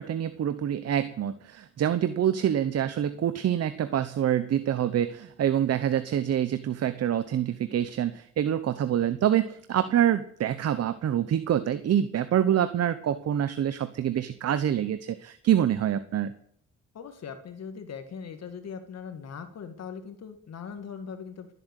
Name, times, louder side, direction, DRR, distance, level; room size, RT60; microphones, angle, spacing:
voice 1, 0.0-16.3, right 10 dB, 55° right, 12 dB, 0.9 m, -26 dB
voice 2, 16.9-21.5, left 6 dB, 60° left, 8 dB, 1.9 m, -40 dB
20.0 x 8.1 x 8.2 m, 0.66 s
cardioid pair, 90°, 30 cm